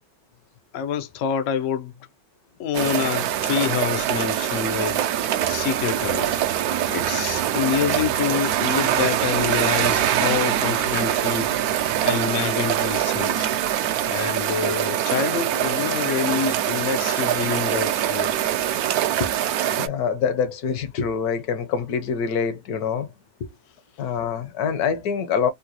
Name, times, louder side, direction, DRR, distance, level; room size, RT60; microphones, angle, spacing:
voice 1, 0.7-1.9 2.6-5.0 5.5-6.4 6.9-11.5 12.0-13.5 14.1-18.3, left 8 dB, 85° left, 0.6 m, -27 dB
sound 1, 2.7-19.9, right 11 dB, 75° right, 0.8 m, -23 dB
voice 2, 19.8-23.1 24.0-25.5, left 6 dB, 65° left, 1.0 m, -25 dB
3.8 x 2.2 x 2.8 m
omnidirectional pair, 2.1 m